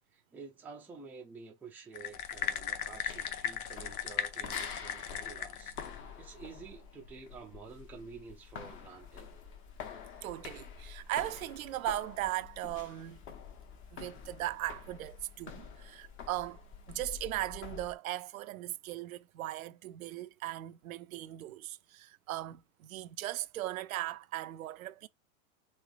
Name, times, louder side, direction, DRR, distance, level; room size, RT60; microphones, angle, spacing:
voice 1, 0.1-5.8 6.2-9.3, right 5 dB, 5° right, 0.4 m, -50 dB
sound 1, 1.9-6.0, left 8 dB, 90° left, 0.7 m, -37 dB
sound 2, 2.1-18.0, left 6 dB, 30° left, 0.7 m, -48 dB
voice 2, 10.2-13.2 13.9-16.6 16.9-25.1, right 15 dB, 75° right, 0.5 m, -38 dB
3.2 x 3.0 x 2.4 m
hypercardioid pair, 115°, 42 cm